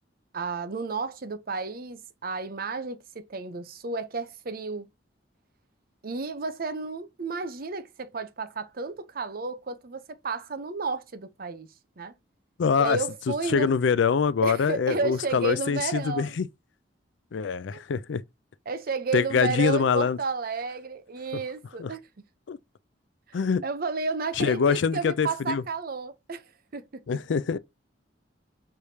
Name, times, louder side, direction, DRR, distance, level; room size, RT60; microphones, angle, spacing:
voice 1, 0.3-4.9 6.0-12.1 12.8-13.7 14.4-16.4 17.7-17.8 18.7-22.0 23.3-26.4 26.7-27.0, right 4 dB, 55° right, 0.7 m, -32 dB
voice 2, 12.6-13.0 13.5-16.5 17.3-18.2 19.1-20.2 21.8-21.9 22.5-22.6 23.3-23.6 24.4-25.6 27.1-27.6, left 6 dB, 85° left, 0.4 m, -24 dB
4.8 x 3.4 x 2.7 m
head